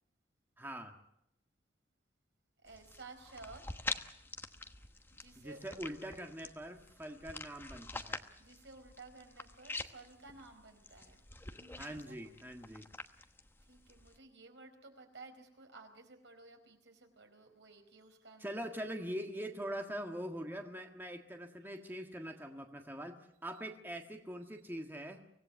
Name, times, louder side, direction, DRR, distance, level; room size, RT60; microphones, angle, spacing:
voice 1, 0.6-0.9 5.3-8.2 11.8-12.9 18.4-25.2, equal, 10° right, 3 dB, 1.7 m, -43 dB
voice 2, 2.6-3.6 5.1-5.8 8.4-11.2 11.5-12.4 13.7-18.5, right 3 dB, 80° right, 5 dB, 4.6 m, -55 dB
sound 1, 2.7-14.2, left 2 dB, 10° left, 1.1 m, -47 dB
24.5 x 17.5 x 8.3 m, 0.78 s
head